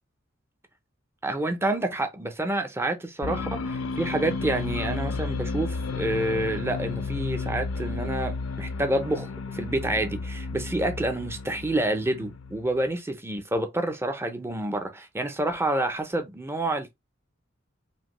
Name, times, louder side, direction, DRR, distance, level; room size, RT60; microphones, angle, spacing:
voice 1, 1.2-9.3 9.5-16.9, right 1 dB, 10° right, 0.5 m, -28 dB
sound 1, 3.2-12.8, left 4 dB, 70° left, 0.4 m, -32 dB
2.9 x 2.6 x 3.0 m
head